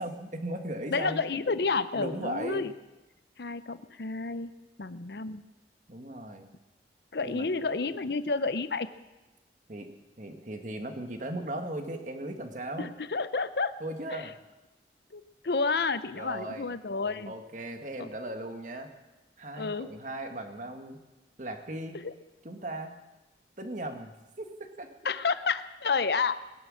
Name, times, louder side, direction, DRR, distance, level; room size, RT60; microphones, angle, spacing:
voice 1, 0.0-1.2 1.9-2.6 5.9-6.5 7.2-7.5 9.7-9.9 10.2-12.9 13.8-14.4 16.1-16.7 17.3-18.9 19.4-21.0 21.4-22.0 22.4-23.0 23.6-24.9, right 1 dB, 45° right, 5 dB, 1.6 m, -37 dB
voice 2, 0.9-2.7 3.4-4.5 4.8-5.4 7.1-8.9 12.8-13.7 14.1-14.3 15.1-17.3 18.0-18.1 19.5-19.9 21.9-22.1 25.0-26.3, left 4 dB, 65° left, 13 dB, 0.7 m, -30 dB
20.5 x 11.0 x 6.4 m, 1.1 s
head